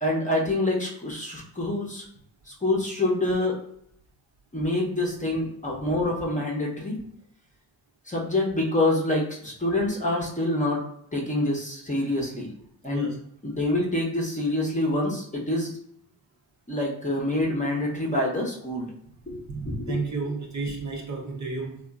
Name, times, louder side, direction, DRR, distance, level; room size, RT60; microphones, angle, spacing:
voice 1, 0.0-2.0 2.6-3.6 4.5-7.0 8.1-10.8 11.1-12.5 12.8-13.1 13.4-15.7 16.7-18.9 19.3-20.0, left 1 dB, 15° left, -2 dB, 0.8 m, -26 dB
voice 2, 19.5-21.8, right 3 dB, 35° right, -1 dB, 0.6 m, -32 dB
2.8 x 2.4 x 2.3 m, 0.69 s
supercardioid pair, 60°, 50 cm